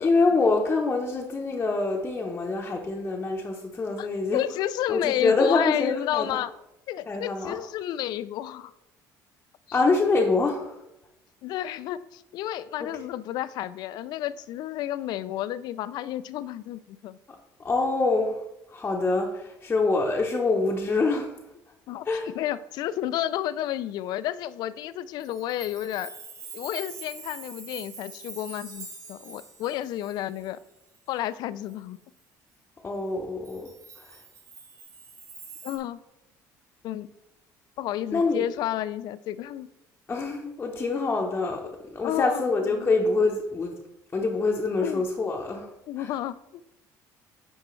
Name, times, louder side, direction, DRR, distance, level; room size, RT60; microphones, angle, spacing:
voice 1, 0.0-4.5 4.9-6.4 7.1-7.6 9.7-10.8 12.8-12.9 17.3-21.4 22.0-22.3 32.8-34.2 38.1-38.4 40.1-43.8 44.1-45.7 46.0-46.1, left 3 dB, 25° left, -1 dB, 0.8 m, -25 dB
voice 2, 4.3-6.5 6.9-8.7 9.7-9.8 11.4-17.2 21.9-22.1 22.3-26.1 26.5-30.6 31.1-32.0 35.6-36.0 36.8-37.1 37.8-39.7 42.0-42.9 44.8-45.0 45.9-46.6, left 12 dB, 65° left, 16 dB, 0.4 m, -31 dB
Chime, 25.2-31.3 31.7-31.8 33.4-35.8, right 4 dB, 45° right, 1.5 m, -44 dB
9.7 x 4.4 x 3.1 m, 0.89 s
cardioid pair, 105°, 8 cm